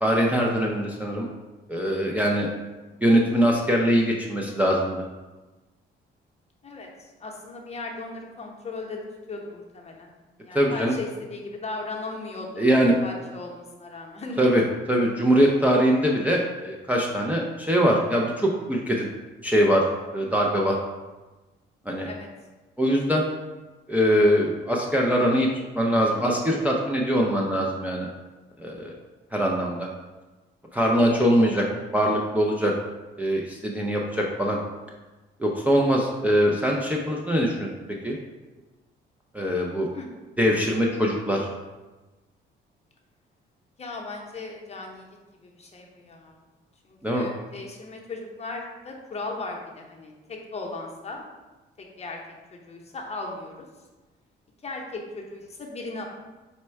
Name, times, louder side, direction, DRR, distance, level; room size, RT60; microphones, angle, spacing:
voice 1, 0.0-1.3 1.7-2.5 3.0-5.0 10.5-10.9 12.6-12.9 14.4-14.6 14.9-19.1 19.4-19.8 20.1-20.8 21.9-22.1 22.8-23.3 23.9-25.5 25.7-28.1 28.6-28.9 29.3-29.9 30.7-31.7 31.9-32.7 33.2-34.6 35.4-37.7 38.0-38.2 39.3-39.9 40.4-41.5 47.0-47.3, equal, 5° right, -2 dB, 0.4 m, -22 dB
voice 2, 6.6-10.1 10.4-12.7 13.0-14.6 22.0-22.3 31.2-31.3 39.9-40.1 43.8-45.1 45.4-46.4 46.8-51.2 51.8-52.2 52.5-53.7 54.6-56.1, left 3 dB, 30° left, 0 dB, 0.8 m, -37 dB
4.2 x 2.2 x 4.4 m, 1.2 s
cardioid pair, 90°, 20 cm